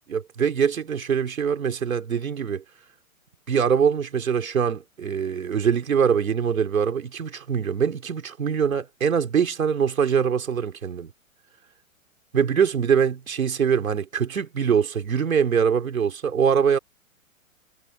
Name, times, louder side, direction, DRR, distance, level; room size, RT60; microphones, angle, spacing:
voice 1, 0.1-2.6 3.5-11.1 12.3-16.8, right 7 dB, 75° right, 3.4 m, -23 dB
hypercardioid pair, 130°, 42 cm